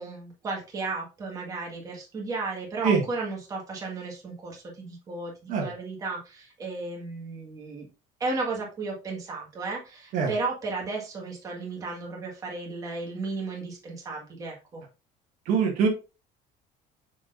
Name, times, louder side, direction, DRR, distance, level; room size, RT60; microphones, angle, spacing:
voice 1, 0.0-7.9 8.2-14.8, right 3 dB, 25° right, -1 dB, 1.7 m, -34 dB
voice 2, 15.5-15.9, right 6 dB, 60° right, 2 dB, 1.8 m, -23 dB
6.4 x 6.0 x 2.5 m, 0.30 s
cardioid pair, 165°, 15 cm